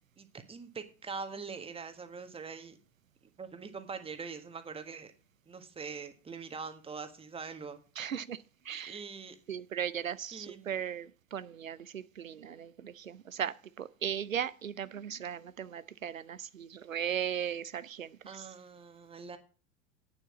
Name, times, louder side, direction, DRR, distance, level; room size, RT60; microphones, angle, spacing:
voice 1, 0.2-2.8 3.4-5.1 5.5-7.8 8.9-9.4 10.3-10.7 18.2-19.4, right 5 dB, 15° right, 1.5 m, -43 dB
voice 2, 8.0-8.4 8.7-9.0 9.5-18.5, right 9 dB, 85° right, 0.6 m, -37 dB
9.1 x 7.0 x 7.2 m
figure-of-eight pair, 85°, 39 cm